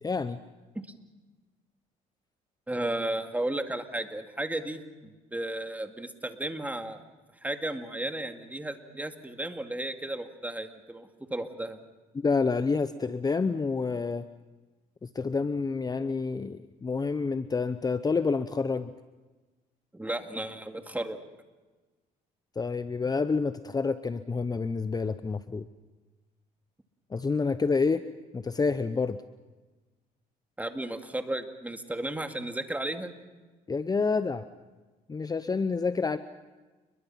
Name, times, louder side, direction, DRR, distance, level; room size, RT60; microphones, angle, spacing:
voice 1, 0.0-0.4 12.2-14.3 15.0-18.9 22.6-25.7 27.1-28.0 28.3-29.2 33.7-34.4 35.1-36.2, left 4 dB, 25° left, 12 dB, 0.8 m, -28 dB
voice 2, 2.7-7.0 7.4-11.8 19.9-21.2 30.6-33.1, right 1 dB, 10° right, 6 dB, 2.3 m, -34 dB
29.0 x 22.0 x 5.8 m, 1.2 s
supercardioid pair, 85°, 17 cm